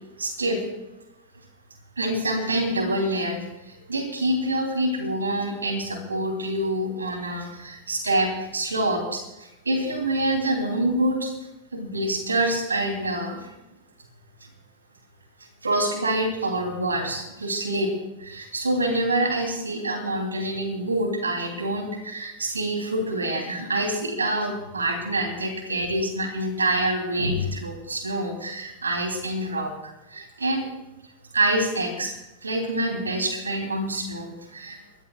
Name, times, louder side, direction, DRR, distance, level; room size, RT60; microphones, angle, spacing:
voice 1, 0.2-0.6 2.0-11.3 11.7-13.5 15.6-17.9 18.2-29.7 30.1-30.7 31.3-32.1 32.4-34.8, right 1 dB, 75° right, 3 dB, 3.3 m, -26 dB
29.5 x 14.0 x 2.4 m, 0.95 s
figure-of-eight pair, 90°, 0 cm